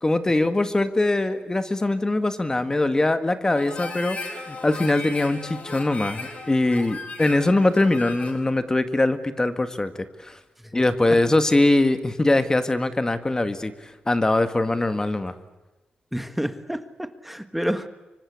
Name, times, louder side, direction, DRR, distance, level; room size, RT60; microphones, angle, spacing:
voice 1, 0.0-4.2 4.5-10.4 10.7-15.4, left 2 dB, 20° left, 10 dB, 1.8 m, -22 dB
Harmonica, 3.5-8.5, left 3 dB, 45° left, 4.9 m, -36 dB
voice 2, 16.1-17.9, equal, 5° right, 10 dB, 1.5 m, -29 dB
25.0 x 25.0 x 8.3 m, 1.1 s
cardioid pair, 95°, 3 cm